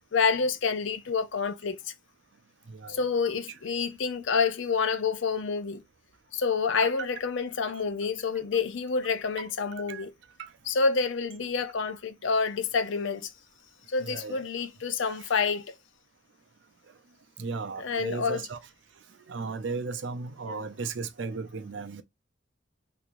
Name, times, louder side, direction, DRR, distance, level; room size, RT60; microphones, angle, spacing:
voice 1, 0.1-1.9 2.9-5.8 6.3-10.1 10.7-13.3 13.9-15.7 17.8-18.5 20.5-20.6, left 5 dB, 70° left, 0.5 m, -28 dB
voice 2, 2.7-3.0 6.8-6.9 9.4-9.5 9.9-10.0 10.4-10.5 14.0-14.4 15.2-15.3 17.4-18.6 19.3-22.0, right 4 dB, 65° right, 0.5 m, -35 dB
3.5 x 3.0 x 2.5 m
head